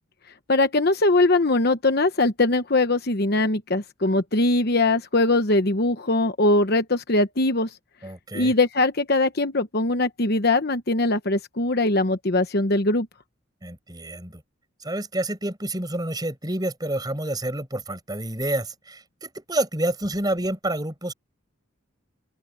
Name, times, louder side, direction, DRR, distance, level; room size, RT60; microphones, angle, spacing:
voice 1, 0.5-7.7 8.3-13.1, left 2 dB, 50° left, 1.1 m, -21 dB
voice 2, 8.0-8.5 13.6-14.4 14.8-21.1, right 1 dB, 20° right, 5.3 m, -28 dB
open air
head